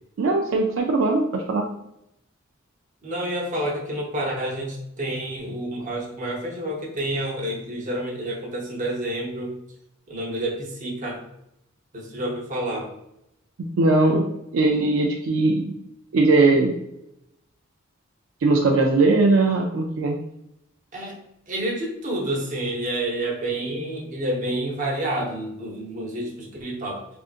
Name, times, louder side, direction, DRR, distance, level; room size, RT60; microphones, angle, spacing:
voice 1, 0.2-1.7 13.8-15.7 16.1-16.7 18.4-20.2, right 3 dB, 70° right, 1 dB, 0.4 m, -20 dB
voice 2, 3.0-9.5 10.1-11.2 11.9-13.0 20.9-21.2 21.5-27.1, right 1 dB, 40° right, -2 dB, 0.8 m, -29 dB
3.6 x 2.5 x 2.4 m, 0.82 s
head